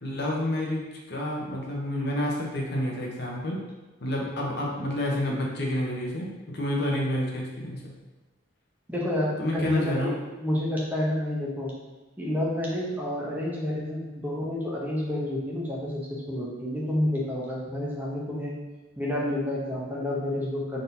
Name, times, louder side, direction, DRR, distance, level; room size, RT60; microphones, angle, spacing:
voice 1, 0.0-3.6 4.0-6.3 6.5-7.8 9.4-10.1, left 1 dB, 55° left, -2 dB, 0.8 m, -29 dB
voice 2, 8.9-11.7 12.2-18.5 19.0-20.8, left 1 dB, 10° right, -5 dB, 0.7 m, -29 dB
3.9 x 3.9 x 2.7 m, 1.2 s
head